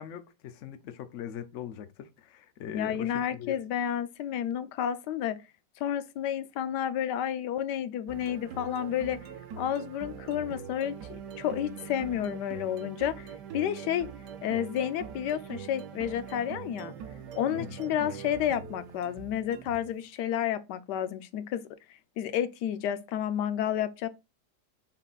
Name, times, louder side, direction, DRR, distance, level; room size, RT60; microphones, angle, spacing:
voice 1, 0.0-3.6 17.6-17.7, left 9 dB, 60° left, 0.8 m, -40 dB
voice 2, 2.7-5.4 5.8-9.2 9.6-14.1 14.4-16.9 17.4-21.7 22.2-24.1, left 10 dB, 85° left, 1.2 m, -31 dB
sound 1, 8.1-20.0, right 7 dB, 80° right, 1.3 m, -43 dB
5.6 x 3.7 x 2.3 m
omnidirectional pair, 1.8 m